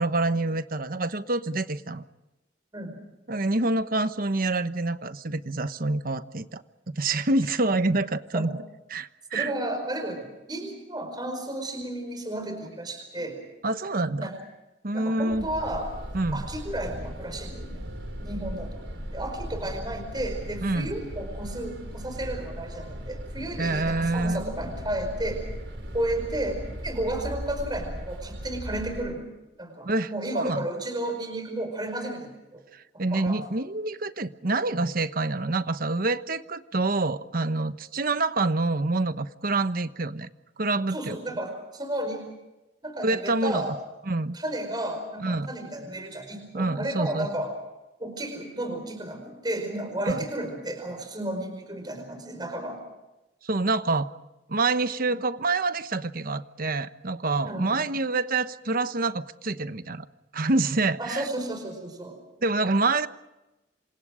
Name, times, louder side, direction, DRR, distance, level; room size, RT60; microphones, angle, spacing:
voice 1, 0.0-2.0 3.3-6.6 6.9-8.5 8.9-9.5 13.6-14.3 14.8-15.5 16.1-16.5 20.6-20.9 23.6-24.4 29.8-30.1 30.3-30.7 32.7-40.3 40.6-41.2 43.0-43.7 44.1-44.4 45.2-45.5 46.5-47.3 50.0-50.2 53.4-54.1 54.5-60.1 60.3-61.2 62.4-63.1, right 2 dB, 50° right, 11 dB, 1.1 m, -27 dB
voice 2, 9.3-13.4 14.2-14.4 14.9-15.9 16.3-17.9 18.2-25.5 25.9-29.2 29.6-32.6 32.9-33.4 40.9-42.3 42.8-43.7 44.3-47.5 48.0-52.9 57.4-57.8 61.0-62.2, right 1 dB, 25° right, 5 dB, 4.9 m, -33 dB
sound 1, 15.3-29.0, equal, 80° right, 4.6 m, -37 dB
28.0 x 26.0 x 5.1 m, 1.0 s
head